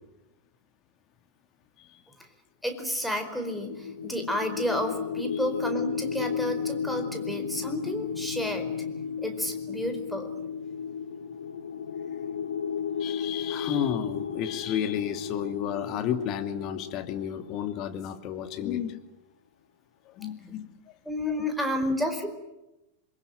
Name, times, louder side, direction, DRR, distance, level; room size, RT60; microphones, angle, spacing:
voice 1, 2.6-8.7 9.2-10.3 21.0-22.3, equal, ahead, 5 dB, 4.8 m, -31 dB
sound 1, 3.2-18.2, left 7 dB, 70° left, 1.8 m, -34 dB
voice 2, 13.0-19.0 20.1-20.7, left 9 dB, 40° left, 7 dB, 2.7 m, -32 dB
27.5 x 22.5 x 9.3 m, 0.96 s
figure-of-eight pair, 90°, 0 cm